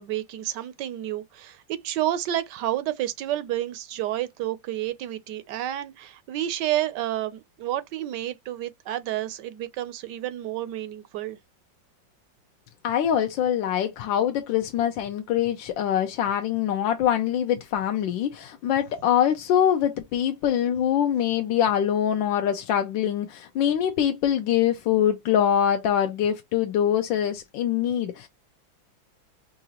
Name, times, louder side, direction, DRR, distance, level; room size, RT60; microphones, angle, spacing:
voice 1, 0.0-11.4, right 13 dB, 75° right, 1.1 m, -30 dB
voice 2, 12.8-28.3, left 9 dB, 80° left, 1.3 m, -24 dB
4.8 x 2.4 x 2.8 m
omnidirectional pair, 2.1 m